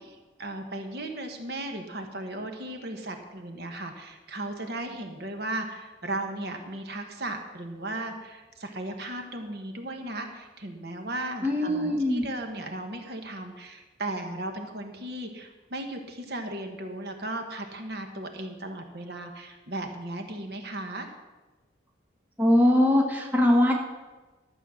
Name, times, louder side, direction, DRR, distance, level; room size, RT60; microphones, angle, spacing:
voice 1, 0.4-21.1, right 1 dB, 55° right, 5 dB, 1.2 m, -36 dB
voice 2, 11.4-12.3 22.4-23.7, left 1 dB, 10° right, 0 dB, 1.2 m, -21 dB
12.0 x 7.7 x 6.3 m, 1.2 s
head